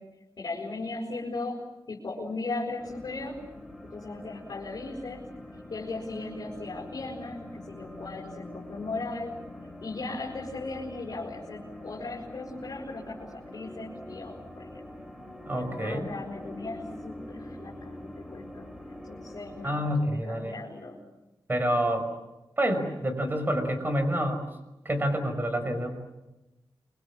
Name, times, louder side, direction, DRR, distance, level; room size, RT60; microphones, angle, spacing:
voice 1, 0.4-3.4 3.8-5.2 5.5-9.3 9.8-14.8 15.5-21.0, left 3 dB, 50° left, -3 dB, 6.3 m, -37 dB
sound 1, 2.8-19.8, left 1 dB, 5° right, 3.9 m, -44 dB
voice 2, 15.5-16.1 19.6-20.5 21.5-22.1 22.6-24.5 24.8-25.9, equal, 25° right, 7 dB, 5.9 m, -28 dB
29.5 x 24.5 x 7.5 m, 0.97 s
wide cardioid pair, 145°, 8 cm